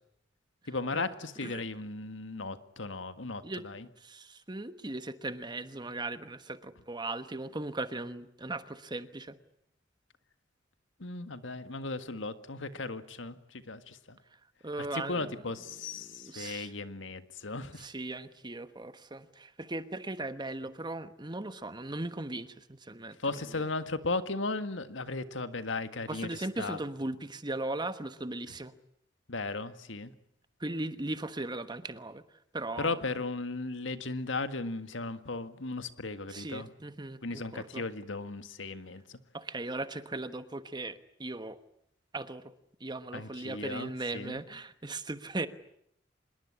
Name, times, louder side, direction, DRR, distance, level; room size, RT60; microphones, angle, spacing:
voice 1, 0.7-3.9 11.0-14.2 14.9-17.9 23.2-26.3 26.6-26.8 29.3-30.1 32.8-36.7 37.2-39.2 43.1-44.4, left 3 dB, 85° left, 11 dB, 1.7 m, -36 dB
voice 2, 4.0-9.4 14.3-15.4 16.0-16.7 17.8-23.2 23.4-23.6 26.1-28.7 30.6-32.2 32.5-33.0 36.3-37.8 39.3-41.6 42.1-42.5 42.8-45.5, right 2 dB, 25° right, 12 dB, 1.2 m, -38 dB
26.0 x 21.0 x 9.9 m, 0.74 s
head